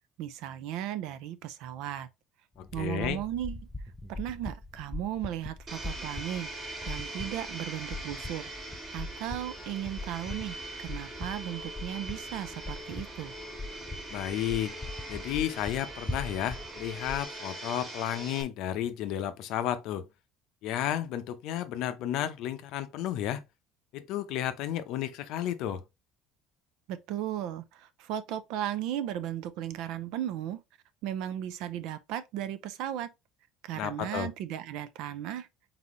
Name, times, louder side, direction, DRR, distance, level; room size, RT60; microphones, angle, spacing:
voice 1, 0.2-2.1 2.7-3.6 4.1-6.5 6.9-8.4 8.9-13.3 26.9-30.6 31.0-33.1 33.6-35.5, right 11 dB, 60° right, 0.6 m, -36 dB
voice 2, 2.6-3.2 14.1-14.7 15.1-20.1 20.6-23.4 23.9-25.8 33.7-34.3, left 11 dB, 55° left, 0.7 m, -32 dB
sound 1, 2.6-17.2, left 2 dB, 10° left, 0.4 m, -42 dB
Domestic sounds home sounds, 5.7-18.4, right 2 dB, 25° right, 1.5 m, -42 dB
4.1 x 4.1 x 3.0 m
cardioid pair, 175°, 0 cm